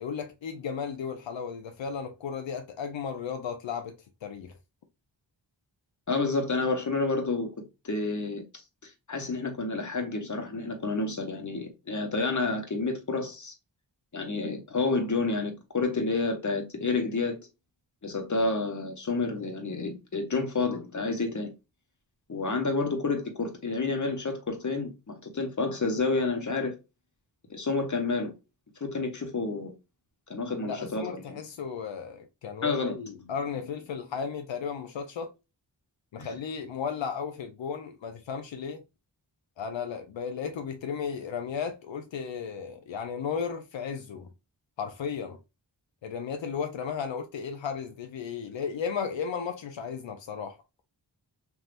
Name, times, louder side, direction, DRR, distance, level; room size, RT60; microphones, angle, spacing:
voice 1, 0.0-3.9 4.2-4.5 30.6-35.3 36.1-38.8 39.6-44.3 44.8-45.4 46.0-50.6, left 6 dB, 80° left, 0.6 m, -34 dB
voice 2, 6.1-7.5 7.8-8.4 8.8-13.5 14.1-17.4 18.0-21.5 22.3-26.7 27.5-28.3 28.8-29.7 30.3-31.4 32.6-33.0 36.2-36.3, left 3 dB, 40° left, 1.1 m, -29 dB
3.4 x 2.7 x 2.4 m
wide cardioid pair, 60°, 44 cm